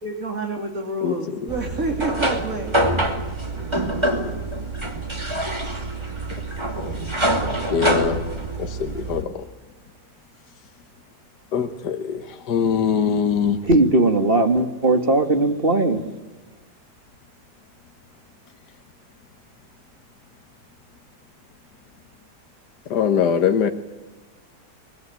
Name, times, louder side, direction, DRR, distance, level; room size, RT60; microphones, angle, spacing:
voice 1, 0.0-3.1, right 2 dB, 55° right, 1 dB, 3.4 m, -29 dB
voice 2, 1.0-1.4 7.7-8.3 8.6-9.5 11.5-13.6 22.9-23.7, left 7 dB, 80° left, 7 dB, 1.8 m, -22 dB
Ambient sound water, 1.5-9.2, right 1 dB, 15° right, 2.6 m, -25 dB
voice 3, 13.7-16.0, right 2 dB, 35° right, 7 dB, 2.3 m, -18 dB
24.5 x 21.5 x 9.3 m, 1.2 s
omnidirectional pair, 1.8 m